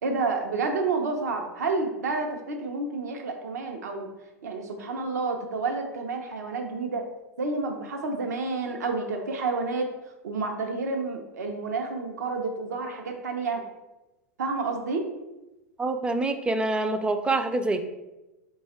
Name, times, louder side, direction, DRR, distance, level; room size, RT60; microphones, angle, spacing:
voice 1, 0.0-4.1 4.4-7.0 7.4-9.9 10.2-13.6 14.4-15.1, right 3 dB, 80° right, 4 dB, 0.7 m, -29 dB
voice 2, 15.8-17.8, right 2 dB, 10° right, 7 dB, 0.4 m, -26 dB
4.1 x 2.3 x 4.2 m, 1.0 s
hypercardioid pair, 100°, 9 cm